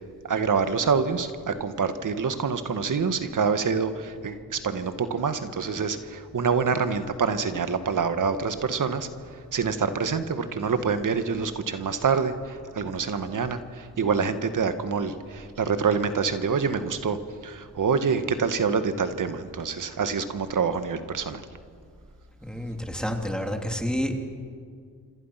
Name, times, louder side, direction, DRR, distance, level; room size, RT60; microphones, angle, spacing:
voice 1, 0.3-9.1 9.5-17.2 17.4-21.4, right 5 dB, 55° right, 9 dB, 1.7 m, -26 dB
voice 2, 22.4-24.1, equal, ahead, 3 dB, 3.2 m, -29 dB
27.0 x 26.0 x 5.9 m, 2.1 s
cardioid pair, 65°, 37 cm